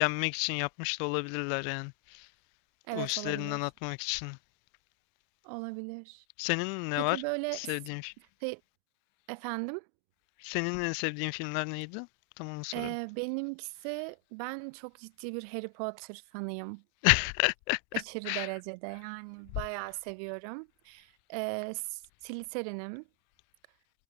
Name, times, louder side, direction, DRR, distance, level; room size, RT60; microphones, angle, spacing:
voice 1, 0.0-2.3 2.9-4.4 6.4-7.2 7.5-8.1 10.4-12.1 12.4-12.9 17.0-17.8 18.3-18.5, left 40 dB or more, 60° left, 0.4 m, -31 dB
voice 2, 2.9-3.6 5.4-6.2 7.0-7.7 8.4-8.6 9.3-9.9 12.7-16.8 17.9-23.1, right 33 dB, 70° right, 0.7 m, -37 dB
supercardioid pair, 130°, 20 cm